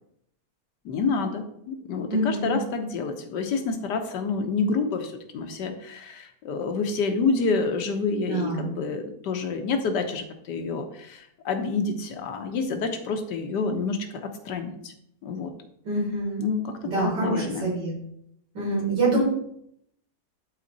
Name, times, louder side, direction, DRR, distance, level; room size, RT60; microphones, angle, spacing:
voice 1, 0.8-14.9 15.2-15.5 16.4-17.7 19.1-19.2, left 4 dB, 80° left, 6 dB, 1.6 m, -28 dB
voice 2, 2.1-2.6 8.3-8.7 15.8-16.4 16.8-17.9 18.5-19.2, right 2 dB, 85° right, -5 dB, 4.5 m, -26 dB
11.5 x 4.2 x 4.0 m, 0.73 s
omnidirectional pair, 1.8 m